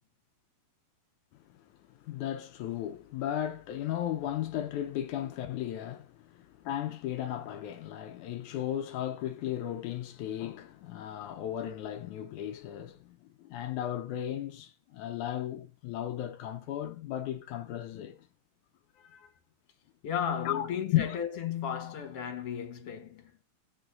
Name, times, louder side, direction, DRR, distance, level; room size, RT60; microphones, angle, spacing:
voice 1, 1.9-18.2 19.0-19.3 20.5-21.2, left 12 dB, 75° left, 1.9 m, -35 dB
voice 2, 20.0-23.3, left 8 dB, 50° left, 2.4 m, -34 dB
19.5 x 6.9 x 2.4 m
omnidirectional pair, 4.0 m